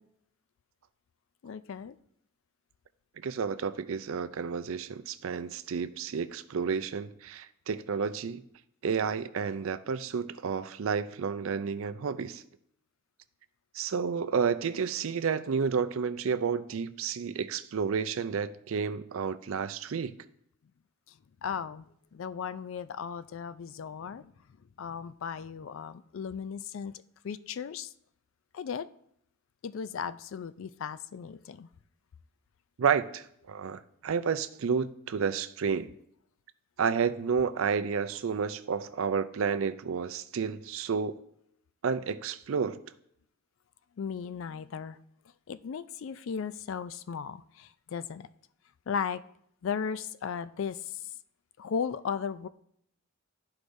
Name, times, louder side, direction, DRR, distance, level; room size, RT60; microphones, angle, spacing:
voice 1, 1.4-2.0 21.4-24.3 24.8-26.9 27.2-27.9 28.5-28.9 29.6-31.7 44.0-45.0 45.5-48.3 48.9-49.2 49.6-51.0 51.6-52.5, left 6 dB, 60° left, 0.3 m, -36 dB
voice 2, 3.2-8.4 8.8-12.4 13.7-20.2 32.8-35.9 36.8-41.2 41.8-42.8, right 6 dB, 65° right, 0.4 m, -31 dB
13.0 x 4.8 x 2.6 m
head